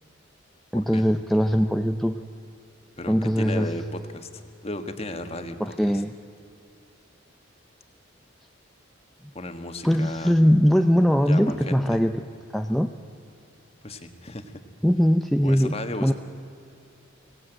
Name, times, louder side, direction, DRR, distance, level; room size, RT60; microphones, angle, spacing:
voice 1, 0.7-2.2 3.1-3.7 5.6-6.1 9.8-12.2 12.5-12.9 14.8-16.1, equal, ahead, 5 dB, 0.5 m, -21 dB
voice 2, 3.0-5.6 9.3-10.3 11.3-12.0 13.8-14.5 15.4-16.1, left 1 dB, 30° left, 7 dB, 1.5 m, -35 dB
25.0 x 18.0 x 9.0 m, 2.7 s
head